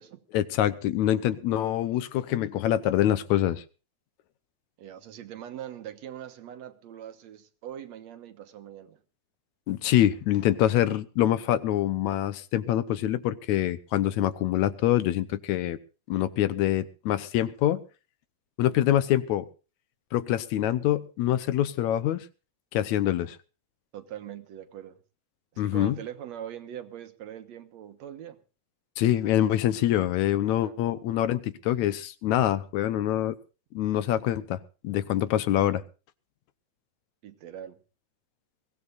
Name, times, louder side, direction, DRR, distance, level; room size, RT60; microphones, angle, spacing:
voice 1, 0.3-3.6 9.7-15.8 16.1-17.8 18.6-19.5 20.1-22.3 22.7-23.4 25.6-26.0 29.0-33.4 33.7-34.6 34.8-35.8, left 12 dB, 75° left, 2.1 m, -25 dB
voice 2, 4.8-9.0 23.9-25.0 25.5-28.4 30.5-30.8 37.2-37.8, right 10 dB, 65° right, 2.3 m, -42 dB
23.0 x 16.5 x 2.5 m
omnidirectional pair, 3.4 m